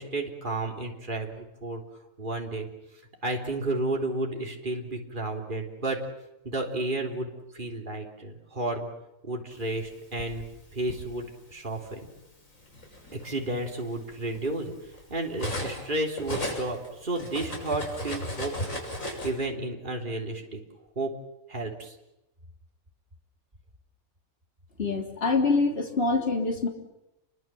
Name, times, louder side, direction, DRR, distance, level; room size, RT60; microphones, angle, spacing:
voice 1, 0.0-1.8 2.2-2.7 3.2-6.0 6.4-8.9 9.2-10.4 10.7-12.0 13.2-14.7 15.1-20.6 21.0-21.1 21.5-22.0, right 2 dB, 35° right, 1 dB, 3.8 m, -32 dB
Cutlery silverware, 9.8-11.1 12.0-12.2 12.6-15.9 16.1-19.3, left 1 dB, 70° left, 6.8 m, -35 dB
voice 2, 24.8-26.7, left 3 dB, 45° left, 2 dB, 3.6 m, -25 dB
29.5 x 23.0 x 7.7 m, 0.92 s
omnidirectional pair, 1.4 m